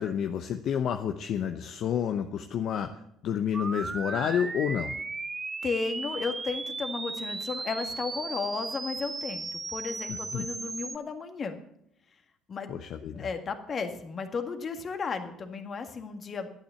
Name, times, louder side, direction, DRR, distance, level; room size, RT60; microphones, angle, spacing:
voice 1, 0.0-2.9 3.2-5.0 10.1-10.5 12.7-13.3, left 8 dB, 60° left, 6 dB, 0.8 m, -30 dB
sound 1, 3.5-11.0, right 3 dB, 25° right, 0.7 m, -36 dB
voice 2, 5.6-11.6 12.5-12.7 13.1-16.6, left 5 dB, 40° left, 7 dB, 1.8 m, -34 dB
11.5 x 9.0 x 7.0 m, 0.75 s
hypercardioid pair, 60°, 0 cm